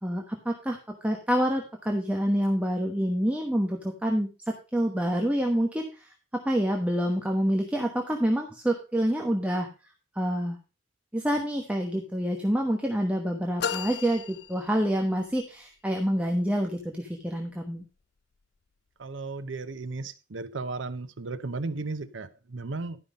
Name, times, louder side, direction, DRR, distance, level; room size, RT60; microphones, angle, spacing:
voice 1, 0.0-9.7 10.1-10.6 11.1-17.8, equal, 5° right, 1.1 m, -27 dB
sound 1, 13.6-15.3, left 7 dB, 60° left, 0.5 m, -35 dB
voice 2, 19.0-23.0, right 3 dB, 85° right, 0.8 m, -35 dB
12.0 x 5.6 x 5.2 m
head